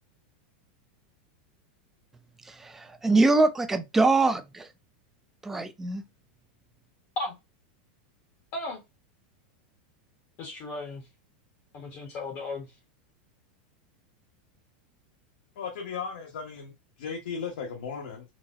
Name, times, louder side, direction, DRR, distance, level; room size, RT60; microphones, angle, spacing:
voice 1, 2.5-4.7 5.4-6.0, right 3 dB, 5° right, 0.3 m, -23 dB
voice 2, 10.4-11.0 11.7-12.7, left 2 dB, 40° left, 0.7 m, -35 dB
voice 3, 15.6-18.2, left 6 dB, 80° left, 0.9 m, -36 dB
3.9 x 2.0 x 2.4 m
supercardioid pair, 160°, 5 cm